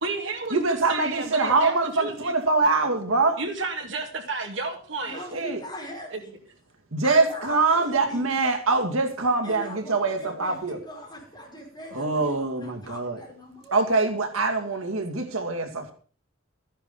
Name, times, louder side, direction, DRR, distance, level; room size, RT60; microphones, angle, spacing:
voice 1, 0.0-2.3 3.4-5.2, right 3 dB, 65° right, 4 dB, 2.6 m, -32 dB
voice 2, 0.5-3.4 5.3-5.6 6.9-10.8 12.0-13.2 13.7-15.9, right 3 dB, 90° right, 5 dB, 2.4 m, -24 dB
voice 3, 5.0-6.3 7.0-8.3 9.4-13.7, left 1 dB, 20° left, -2 dB, 5.7 m, -40 dB
14.0 x 10.0 x 5.4 m, 0.40 s
head